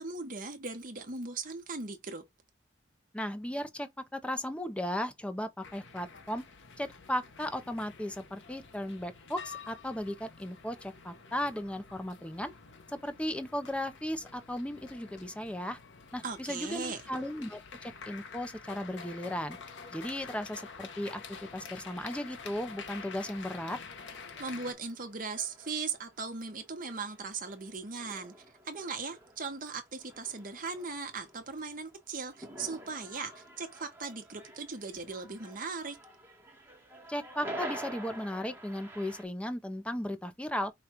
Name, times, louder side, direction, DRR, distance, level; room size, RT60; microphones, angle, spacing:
voice 1, 0.0-2.2 16.2-17.0 24.4-36.0, right 4 dB, 45° right, 1.1 m, -38 dB
voice 2, 3.1-6.4 6.8-12.5 13.0-15.8 16.1-19.6 19.9-21.2 21.5-23.8 37.1-40.7, left 1 dB, 5° left, 0.5 m, -36 dB
sound 1, 5.6-24.7, left 5 dB, 75° left, 0.8 m, -48 dB
sound 2, 23.9-39.3, right 1 dB, 10° right, 1.1 m, -48 dB
5.0 x 2.4 x 4.3 m
head